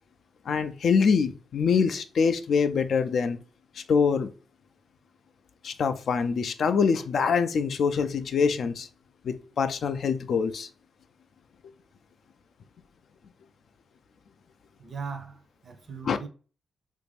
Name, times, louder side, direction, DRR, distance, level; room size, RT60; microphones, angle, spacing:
voice 1, 0.5-3.4 3.8-4.3 5.6-8.9 9.2-10.7 16.0-16.2, left 6 dB, 60° left, 0.3 m, -24 dB
voice 2, 14.8-16.3, right 5 dB, 45° right, 0.5 m, -39 dB
3.2 x 2.5 x 3.3 m
cardioid pair, 100°, 0 cm